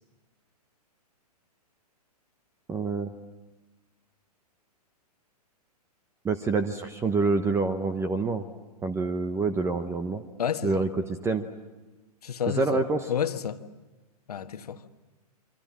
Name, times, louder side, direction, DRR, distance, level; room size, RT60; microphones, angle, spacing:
voice 1, 2.7-3.1 6.2-8.5 8.8-10.2 10.6-11.5 12.6-13.1, right 3 dB, 15° right, 1.0 m, -27 dB
voice 2, 10.4-10.8 12.2-12.8 13.1-13.6 14.3-14.8, left 8 dB, 70° left, 1.4 m, -30 dB
28.0 x 25.0 x 7.4 m
hypercardioid pair, 120°, 20 cm